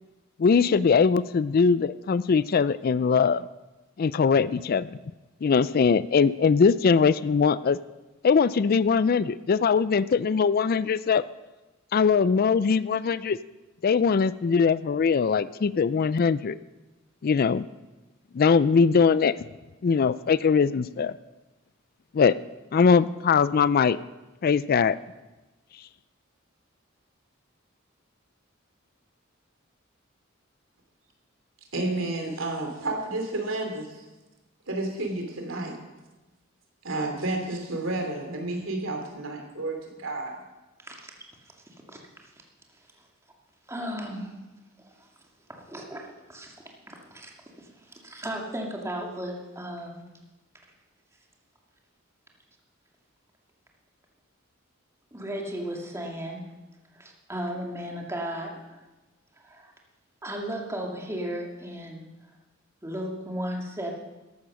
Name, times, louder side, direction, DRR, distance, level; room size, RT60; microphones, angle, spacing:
voice 1, 0.4-3.4 4.0-5.0 5.4-7.8 8.2-11.2 11.9-13.4 13.8-16.6 17.2-17.7 18.3-19.4 19.8-21.1 22.1-22.4 22.7-24.0 24.4-25.0, left 5 dB, 45° left, 17 dB, 0.4 m, -21 dB
voice 2, 31.7-34.0 34.7-35.8 36.8-40.4, right 2 dB, 70° right, 3 dB, 2.9 m, -31 dB
voice 3, 40.8-41.2 41.9-42.3 43.7-44.4 44.8-45.1 45.5-46.5 46.9-47.3 47.6-50.0 55.1-56.5 56.9-58.8 59.4-59.7 60.2-62.0 62.8-63.9, equal, 15° right, 0 dB, 2.3 m, -35 dB
14.5 x 11.5 x 6.3 m, 1.1 s
head